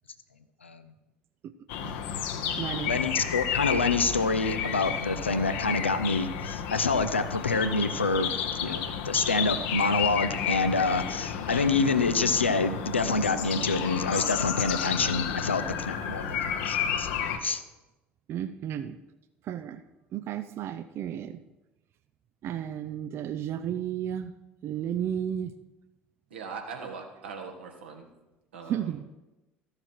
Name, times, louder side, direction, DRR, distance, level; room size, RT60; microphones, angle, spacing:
voice 1, 0.6-0.9 2.8-8.3 8.6-17.6, left 3 dB, 85° left, 10 dB, 0.5 m, -27 dB
sound 1, 1.7-17.4, left 8 dB, 60° left, 0.9 m, -32 dB
voice 2, 2.6-3.0 18.3-19.0 19.5-19.8 20.1-21.4 22.4-24.3 24.6-25.5 28.7-29.0, right 10 dB, 45° right, 11 dB, 0.5 m, -33 dB
voice 3, 26.3-28.0 28.5-29.0, right 5 dB, 70° right, 2 dB, 1.5 m, -40 dB
13.5 x 6.7 x 4.5 m, 1.0 s
figure-of-eight pair, 60°, 6 cm